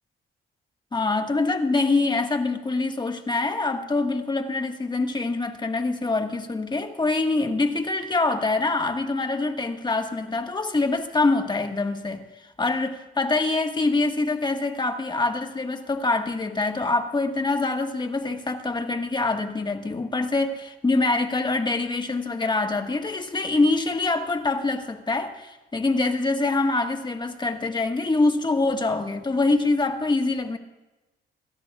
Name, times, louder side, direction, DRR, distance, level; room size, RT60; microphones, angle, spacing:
voice 1, 0.9-12.2 12.6-30.6, left 3 dB, 20° left, 5 dB, 1.6 m, -25 dB
27.5 x 13.0 x 2.4 m, 1.1 s
cardioid pair, 90°, 20 cm